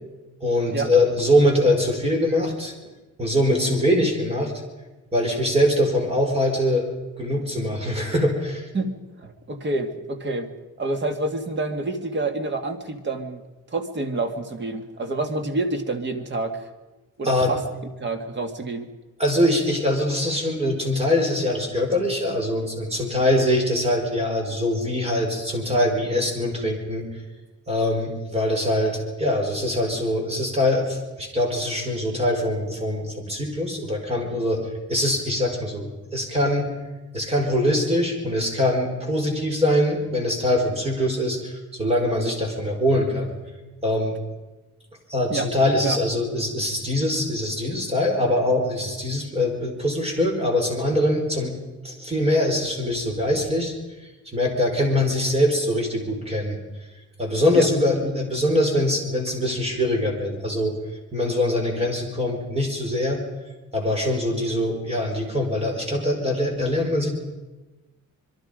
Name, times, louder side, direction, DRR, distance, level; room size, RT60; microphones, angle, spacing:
voice 1, 0.4-2.7 3.2-4.5 5.1-6.9 7.2-8.7 17.2-17.5 19.2-27.1 27.7-36.7 37.1-43.3 43.8-44.2 45.1-51.6 51.8-53.7 54.3-56.6 57.2-60.7 61.1-63.2 63.7-67.1, left 1 dB, 20° right, 2 dB, 4.8 m, -23 dB
voice 2, 8.7-10.5 10.8-13.4 13.7-16.7 17.2-17.6 18.0-18.9 45.3-45.5 45.8-46.0 57.5-57.7, right 2 dB, 35° right, 6 dB, 2.0 m, -28 dB
26.0 x 22.0 x 5.2 m, 1.1 s
wide cardioid pair, 160°, 31 cm